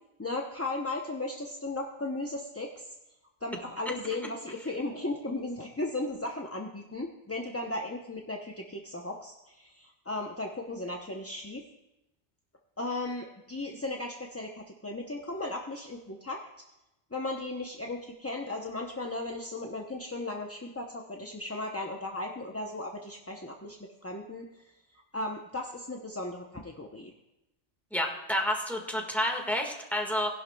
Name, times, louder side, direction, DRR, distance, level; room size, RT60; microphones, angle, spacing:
voice 1, 0.2-2.9 3.4-11.6 12.8-16.4 17.1-24.5 25.1-27.1, left 2 dB, 15° left, 0 dB, 0.5 m, -36 dB
voice 2, 27.9-30.3, equal, ahead, 1 dB, 1.5 m, -29 dB
19.0 x 11.0 x 2.2 m, 0.95 s
omnidirectional pair, 1.2 m